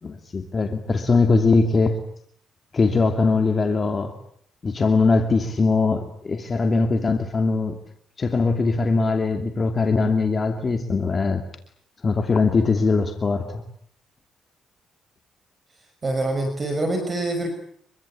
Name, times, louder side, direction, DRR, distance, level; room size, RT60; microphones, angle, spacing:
voice 1, 0.0-2.0 2.7-4.2 4.6-7.7 8.2-11.4 12.0-13.6, left 4 dB, 35° left, 5 dB, 2.7 m, -21 dB
voice 2, 16.0-17.5, right 2 dB, 35° right, 7 dB, 5.8 m, -25 dB
26.0 x 24.0 x 8.7 m, 0.64 s
cardioid pair, 90°, 0 cm